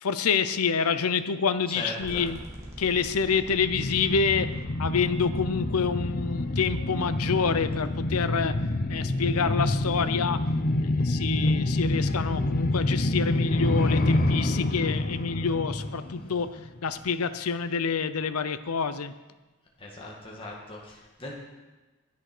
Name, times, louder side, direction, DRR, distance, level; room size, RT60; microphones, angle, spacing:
voice 1, 0.0-2.4 2.8-8.6 8.9-10.4 10.8-19.1, left 5 dB, 85° left, 12 dB, 0.7 m, -27 dB
voice 2, 1.7-2.3 16.2-16.3 19.8-21.3, left 1 dB, 25° left, -3 dB, 1.8 m, -39 dB
sound 1, 2.0-10.0, equal, 15° right, 2.2 m, -44 dB
sound 2, 3.5-16.8 17.1-17.2, left 2 dB, 40° left, 0.7 m, -27 dB
10.5 x 10.5 x 6.1 m, 1.2 s
head